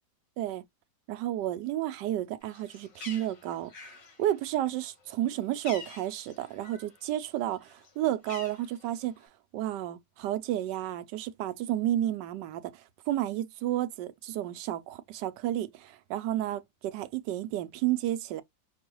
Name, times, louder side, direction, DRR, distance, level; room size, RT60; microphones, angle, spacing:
voice 1, 1.1-3.7 4.2-9.3 9.5-18.4, right 13 dB, 80° right, 1.2 m, -31 dB
Bird, 2.4-7.0 7.3-9.3, left 4 dB, 75° left, 2.0 m, -48 dB
5.4 x 2.4 x 3.0 m
omnidirectional pair, 1.9 m